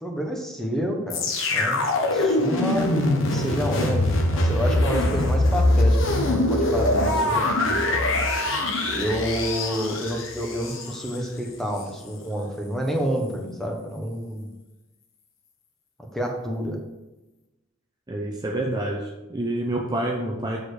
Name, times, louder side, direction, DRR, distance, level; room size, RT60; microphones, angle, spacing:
voice 1, 0.0-8.0 8.9-14.5 16.1-16.8, equal, ahead, 1 dB, 1.3 m, -29 dB
sound 1, 1.1-11.2 11.8-11.9, left 1 dB, 65° left, 1.3 m, -23 dB
voice 2, 18.1-20.6, right 1 dB, 20° right, -1 dB, 0.8 m, -28 dB
7.3 x 6.6 x 5.0 m, 1.0 s
head